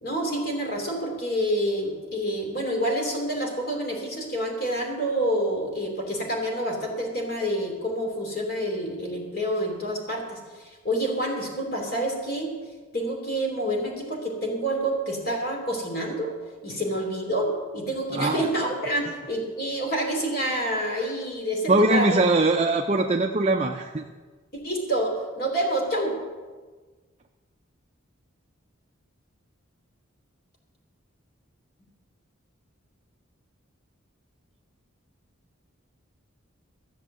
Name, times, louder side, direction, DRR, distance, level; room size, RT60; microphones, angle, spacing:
voice 1, 0.0-12.5 12.9-16.3 16.6-22.1 24.6-26.1, right 1 dB, 45° left, 1 dB, 3.0 m, -28 dB
voice 2, 18.1-18.5 21.7-24.1, right 2 dB, 30° right, 3 dB, 0.5 m, -22 dB
14.0 x 7.2 x 7.8 m, 1.4 s
head